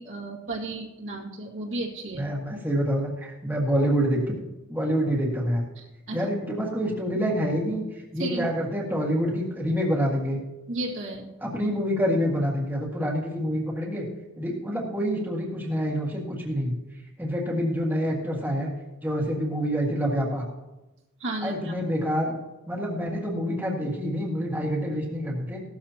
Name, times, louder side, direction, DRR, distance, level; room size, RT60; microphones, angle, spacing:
voice 1, 0.0-2.3 6.1-6.3 8.2-8.5 10.7-11.3 21.2-21.7, right 2 dB, 60° right, -2 dB, 2.1 m, -33 dB
voice 2, 2.2-4.4 4.7-5.6 6.1-10.4 11.4-14.1 14.4-16.7 17.2-18.7 19.0-20.5 21.4-22.3 22.7-25.6, equal, 10° right, -4 dB, 1.8 m, -27 dB
16.5 x 13.0 x 2.9 m, 1.0 s
head